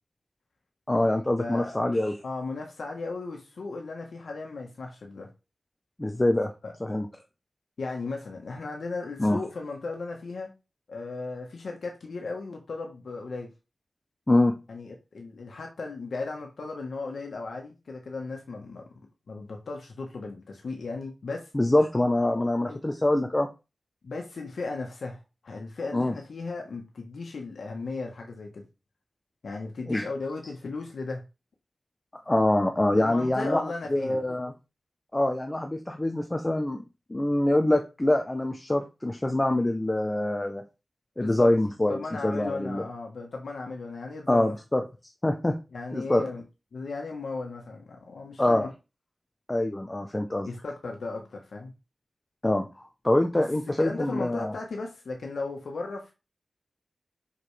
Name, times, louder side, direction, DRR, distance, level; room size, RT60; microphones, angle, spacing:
voice 1, 0.9-2.1 6.0-6.5 6.8-7.1 9.2-9.4 14.3-14.6 21.5-23.5 25.9-26.1 29.9-30.0 32.3-33.6 33.9-34.5 35.1-36.8 37.1-40.6 41.2-42.8 44.3-44.8 45.2-45.6 45.9-46.2 48.4-48.7 49.5-50.5 52.4-52.7 53.0-54.5, left 1 dB, 20° left, 0.7 m, -24 dB
voice 2, 1.4-1.7 2.2-5.3 6.6-6.7 7.8-10.5 10.9-13.5 14.7-18.9 19.3-21.5 22.7-22.8 24.0-25.2 25.4-28.6 29.4-31.2 33.0-34.2 41.2-41.5 41.9-44.5 45.7-46.4 46.7-48.7 50.4-51.7 53.3-53.4 53.8-56.1, left 3 dB, 85° left, 1.3 m, -36 dB
5.8 x 5.2 x 3.3 m
wide cardioid pair, 110°, 0 cm